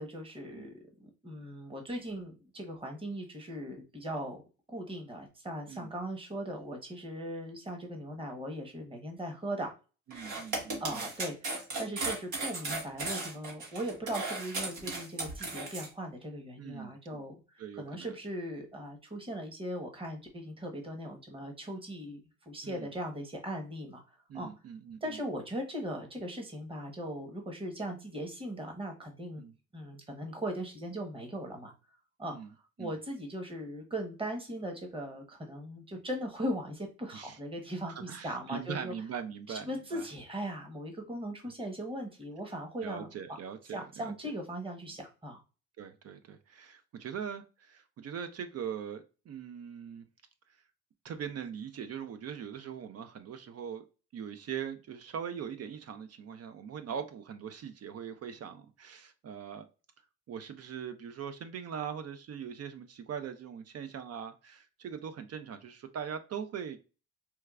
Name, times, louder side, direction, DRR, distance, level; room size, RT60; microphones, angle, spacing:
voice 1, 0.0-4.4 4.7-9.7 10.8-17.4 17.7-24.5 25.0-29.4 29.7-31.7 32.2-38.9 39.5-43.1 43.7-45.4, equal, 20° right, 1.0 m, -39 dB
voice 2, 10.1-11.1 16.6-17.2 17.6-18.1 22.6-22.9 24.3-25.2 29.4-29.5 32.3-32.5 32.8-32.9 37.1-37.4 37.9-40.1 42.8-44.1 45.8-50.0 51.0-53.8 54.1-59.6 60.3-66.8, right 7 dB, 55° right, 0.5 m, -41 dB
sound 1, 10.1-15.9, right 2 dB, 80° right, 1.4 m, -36 dB
4.5 x 2.2 x 2.3 m
cardioid pair, 90°, 30 cm